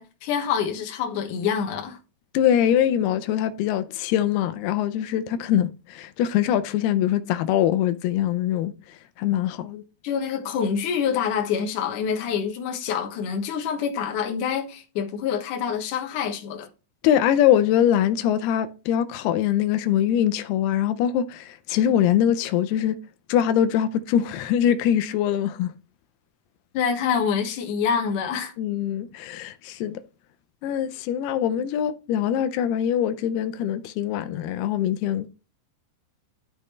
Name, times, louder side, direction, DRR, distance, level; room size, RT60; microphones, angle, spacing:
voice 1, 0.0-2.0 10.0-16.7 26.7-28.5, left 7 dB, 65° left, 2.5 m, -26 dB
voice 2, 2.3-8.7 9.2-9.8 17.0-23.0 23.3-25.7 28.6-30.0 30.6-35.3, left 10 dB, 90° left, 2.7 m, -23 dB
12.0 x 5.1 x 3.2 m
omnidirectional pair, 4.5 m